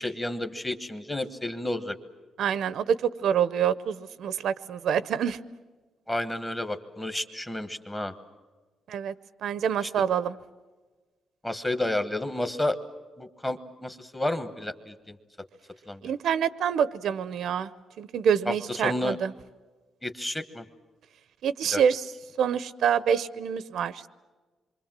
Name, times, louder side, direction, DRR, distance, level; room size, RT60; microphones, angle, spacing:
voice 1, 0.0-2.0 6.1-8.1 9.8-9.9 11.4-12.8 13.2-15.2 15.9-16.0 18.5-18.6 18.8-19.2 20.0-20.6 21.7-21.8, left 1 dB, 10° left, 10 dB, 1.1 m, -31 dB
voice 2, 2.4-5.4 8.9-9.1 9.4-10.4 16.0-17.7 18.0-19.3 21.4-22.1 22.4-24.1, right 8 dB, 60° right, 16 dB, 0.7 m, -26 dB
27.0 x 24.5 x 7.5 m, 1.3 s
cardioid pair, 180°, 0 cm